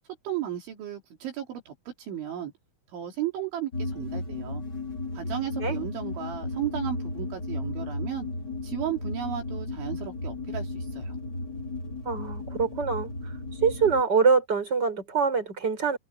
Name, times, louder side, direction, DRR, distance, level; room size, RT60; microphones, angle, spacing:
voice 1, 0.3-2.5 2.9-4.6 5.1-8.3 8.6-11.2, right 10 dB, 70° right, 5.4 m, -34 dB
sound 1, 3.7-14.0, left 2 dB, 25° left, 4.0 m, -34 dB
voice 2, 12.0-13.1 13.6-16.0, right 5 dB, 20° right, 6.4 m, -24 dB
omnidirectional pair, 5.6 m